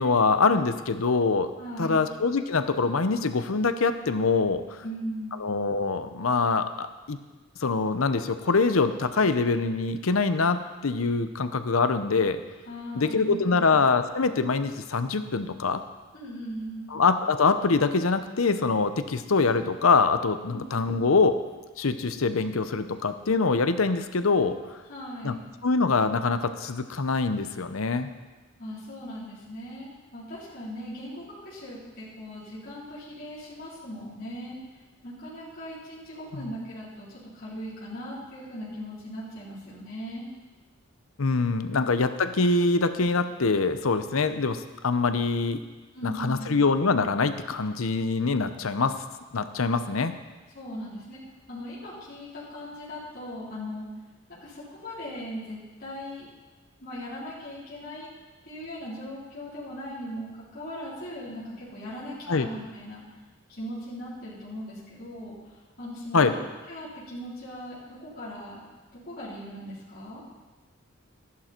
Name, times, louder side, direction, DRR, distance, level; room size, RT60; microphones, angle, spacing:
voice 1, 0.0-1.5 1.8-4.6 5.4-7.2 7.6-12.4 13.0-15.8 16.9-21.4 21.8-24.6 25.2-25.3 25.6-28.1 41.2-45.6 46.0-48.9 49.3-50.1 62.3-62.5 66.1-66.3, left 4 dB, 80° left, 10 dB, 0.8 m, -24 dB
voice 2, 1.6-2.1 4.8-5.4 12.7-13.7 16.1-16.9 20.5-20.7 24.9-25.5 28.6-34.6 35.0-37.1 37.3-40.3 45.9-46.6 49.8-49.9 50.5-51.2 51.5-53.9 54.3-56.3 56.8-58.1 58.4-60.3 60.5-63.0 63.5-68.6 68.9-70.2, equal, 45° left, -10 dB, 4.2 m, -39 dB
13.5 x 11.0 x 4.5 m, 1.2 s
head